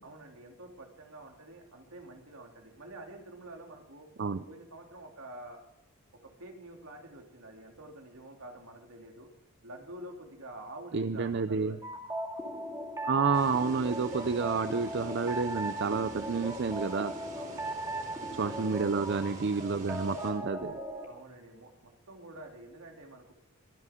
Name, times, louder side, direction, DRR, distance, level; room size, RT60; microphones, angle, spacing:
voice 1, 0.0-4.1 4.5-5.6 6.1-9.3 9.6-11.9 17.4-17.7 18.4-18.7 21.1-23.3, right 1 dB, 75° right, 2 dB, 3.0 m, -48 dB
voice 2, 10.9-11.8 13.0-17.1 18.4-20.8, right 5 dB, 50° right, 11 dB, 0.5 m, -30 dB
sound 1, 11.8-21.1, right 1 dB, 15° right, 2.3 m, -38 dB
sound 2, 13.3-20.3, right 2 dB, 35° right, 3.9 m, -47 dB
23.5 x 9.9 x 3.7 m, 0.87 s
head